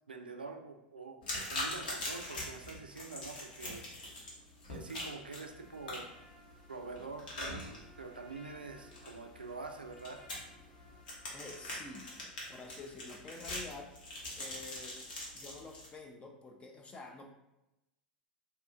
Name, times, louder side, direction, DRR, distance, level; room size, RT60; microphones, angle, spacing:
voice 1, 0.1-3.8 4.7-6.1 6.7-10.2, right 4 dB, 85° right, 5 dB, 0.3 m, -46 dB
sound 1, 1.2-15.9, left 1 dB, 65° left, 1.0 m, -43 dB
Trumpet, 5.0-12.2, left 1 dB, 85° left, 1.4 m, -61 dB
voice 2, 11.3-12.1 12.5-13.9 14.4-15.0 15.3-17.2, left 3 dB, 25° left, 2 dB, 0.4 m, -48 dB
2.7 x 2.4 x 3.5 m, 0.92 s
figure-of-eight pair, 85°, 5 cm